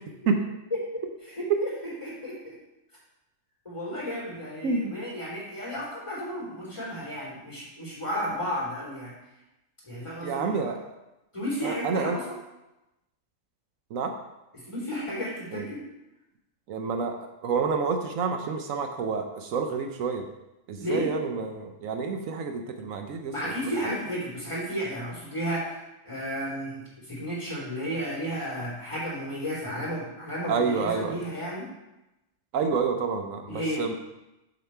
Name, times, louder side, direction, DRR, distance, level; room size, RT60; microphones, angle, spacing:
voice 1, 1.3-1.7 2.0-2.4 3.6-9.1 9.9-10.7 11.3-12.3 14.7-15.8 20.8-21.1 23.3-31.7 33.5-33.8, equal, 20° left, -7 dB, 3.1 m, -33 dB
voice 2, 4.6-5.0 10.2-10.9 11.6-12.2 13.9-14.1 15.5-15.7 16.7-20.3 20.7-23.9 30.5-31.2 32.5-33.9, right 5 dB, 80° right, 5 dB, 1.1 m, -29 dB
6.8 x 6.4 x 4.4 m, 0.95 s
omnidirectional pair, 1.4 m